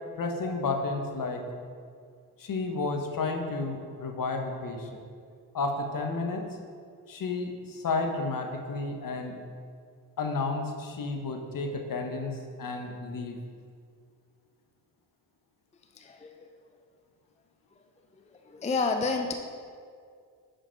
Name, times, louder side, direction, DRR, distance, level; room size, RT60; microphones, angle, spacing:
voice 1, 0.2-1.4 2.4-5.0 5.5-6.4 7.1-9.4 10.2-13.4, left 3 dB, 50° left, 4 dB, 1.0 m, -32 dB
voice 2, 16.0-16.5 18.2-19.3, left 4 dB, 15° left, 4 dB, 0.5 m, -30 dB
5.9 x 5.0 x 4.5 m, 2.2 s
supercardioid pair, 50°, 43 cm